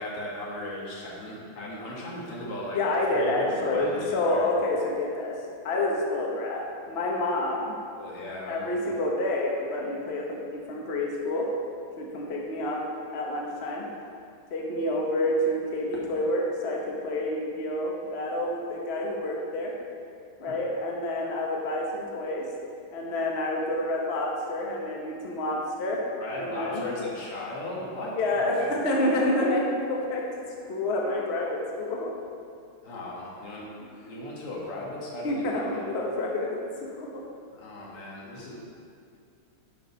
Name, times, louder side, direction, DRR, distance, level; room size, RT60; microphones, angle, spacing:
voice 1, 0.0-2.8 3.1-4.5 8.0-8.8 26.2-28.7 32.8-33.7 34.0-35.8 37.5-38.5, left 1 dB, 85° left, -5 dB, 2.7 m, -37 dB
voice 2, 2.7-5.4 5.6-7.7 8.5-11.5 12.0-12.8 13.1-13.9 14.5-19.7 20.4-22.5 22.9-26.8 28.1-30.3 30.7-32.1 33.8-34.0 35.2-36.5 36.8-37.2, left 1 dB, 40° left, -2 dB, 1.0 m, -28 dB
10.0 x 4.6 x 5.6 m, 2.4 s
omnidirectional pair, 2.4 m